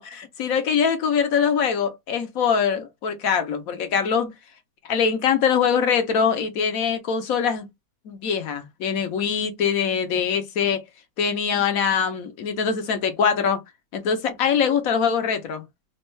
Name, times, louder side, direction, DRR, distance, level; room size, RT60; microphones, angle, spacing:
voice 1, 0.0-4.3 4.8-7.7 8.0-10.8 11.2-13.6 13.9-15.6, left 6 dB, 60° left, 1.1 m, -23 dB
4.3 x 2.3 x 3.1 m
omnidirectional pair, 1.9 m